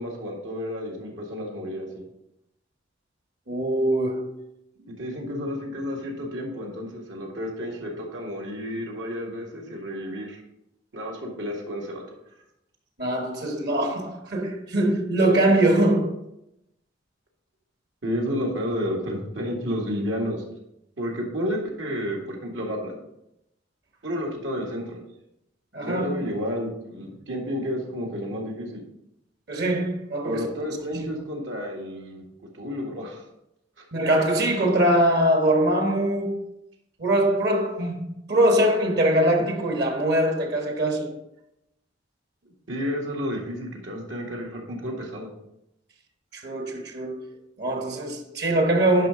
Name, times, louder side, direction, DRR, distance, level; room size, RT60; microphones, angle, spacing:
voice 1, 0.0-2.0 4.9-10.4 10.9-12.0 18.0-20.4 21.0-23.0 24.0-25.0 25.8-28.8 30.2-32.2 32.5-33.2 33.8-33.9 42.7-45.3, equal, 80° right, 1.8 m, -31 dB
voice 2, 3.5-4.4 13.0-16.2 25.7-26.2 29.5-30.5 30.9-31.0 33.9-36.4 37.0-41.2 46.3-47.3 47.6-49.1, right 1 dB, 60° right, 1.2 m, -22 dB
10.5 x 5.5 x 3.7 m
head